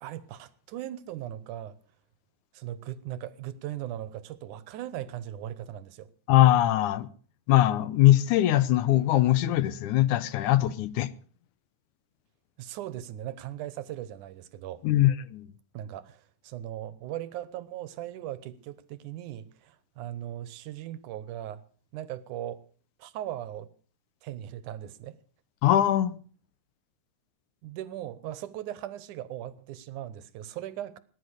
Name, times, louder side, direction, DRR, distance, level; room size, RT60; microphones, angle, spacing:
voice 1, 0.0-1.8 2.5-6.1 12.6-14.8 15.7-21.6 21.9-22.6 23.0-23.7 24.2-25.2 27.6-31.0, right 12 dB, 85° right, 2.5 m, -38 dB
voice 2, 6.3-7.1 7.5-11.1 14.8-15.5 25.6-26.2, left 14 dB, 80° left, 2.3 m, -22 dB
19.0 x 10.5 x 6.4 m
omnidirectional pair, 3.5 m